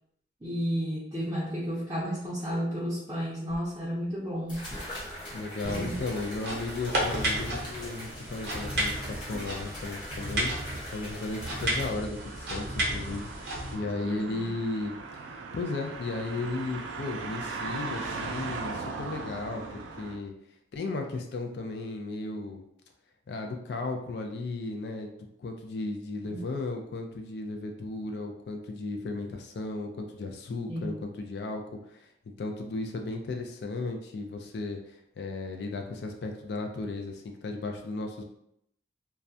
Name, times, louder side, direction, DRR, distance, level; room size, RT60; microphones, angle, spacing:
voice 1, 0.4-4.7 5.6-6.0 14.0-14.5 26.2-26.4 30.7-31.0, equal, 15° right, -9 dB, 0.5 m, -32 dB
sound 1, 3.5-3.6 4.5-11.9, equal, 25° left, 0.7 m, -41 dB
voice 2, 5.3-15.0 15.5-20.3 20.7-22.6 23.3-31.8 32.4-38.2, left 3 dB, 60° left, 4 dB, 0.3 m, -35 dB
sound 2, 5.6-13.7, right 1 dB, 55° right, 0.7 m, -33 dB
sound 3, 12.2-20.2, right 4 dB, 85° right, 0.3 m, -39 dB
2.3 x 2.1 x 2.5 m, 0.76 s
head